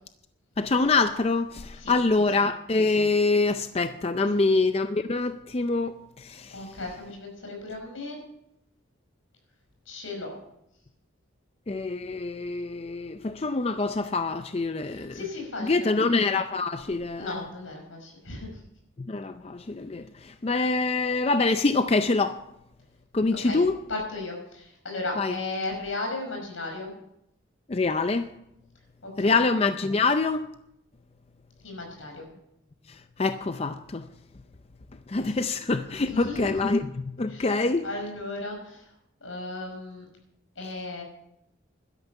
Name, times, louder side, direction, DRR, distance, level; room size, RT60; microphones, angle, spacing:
voice 1, 0.6-6.7 11.7-15.2 15.6-17.4 19.0-22.4 23.1-23.8 25.2-25.4 27.7-28.3 29.2-30.5 32.9-34.1 35.1-37.9, left 3 dB, 30° left, 0.4 m, -25 dB
voice 2, 6.5-8.2 9.9-10.3 14.9-15.9 17.2-18.5 23.4-23.6 23.9-26.9 29.0-29.4 31.6-32.3 36.0-36.5 37.3-38.9 39.2-40.1 40.6-41.0, left 2 dB, 85° left, 5.5 m, -35 dB
12.0 x 11.0 x 7.1 m
head